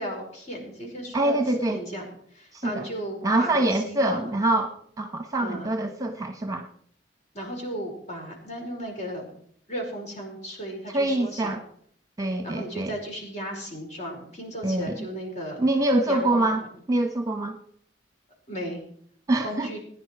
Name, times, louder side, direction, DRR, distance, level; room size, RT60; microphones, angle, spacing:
voice 1, 0.0-1.4 1.7-2.0 2.3-4.3 5.4-5.7 7.3-9.3 9.7-11.6 12.4-15.6 16.1-16.5 18.5-18.8 19.4-19.8, equal, 40° left, 0 dB, 5.1 m, -35 dB
voice 2, 1.1-1.8 2.5-2.9 3.2-6.7 10.9-11.6 12.2-12.9 14.6-15.1 15.6-16.6 16.9-17.6 19.3-19.7, right 2 dB, 20° right, 6 dB, 1.1 m, -25 dB
20.0 x 10.5 x 4.7 m, 0.63 s
head